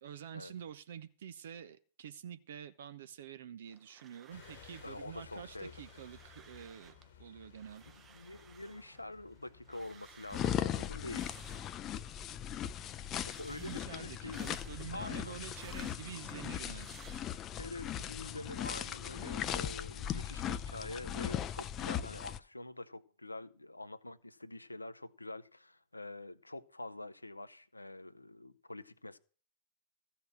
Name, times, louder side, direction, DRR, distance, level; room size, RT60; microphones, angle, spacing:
voice 1, 0.0-6.9 7.2-7.9 13.5-16.9, right 9 dB, 60° right, 0.7 m, -48 dB
sound 1, 3.7-5.1 5.3-7.1 7.4-12.2 12.5-17.7, right 7 dB, 25° right, 0.9 m, -59 dB
sound 2, 4.3-15.8, left 7 dB, 60° left, 1.3 m, -59 dB
voice 2, 4.8-5.7 7.9-11.5 13.2-14.5 14.9-15.4 17.5-29.2, left 2 dB, 85° left, 0.6 m, -46 dB
sound 3, 10.3-22.4, left 10 dB, 30° left, 0.5 m, -38 dB
14.0 x 5.7 x 7.5 m
figure-of-eight pair, 95°, 0 cm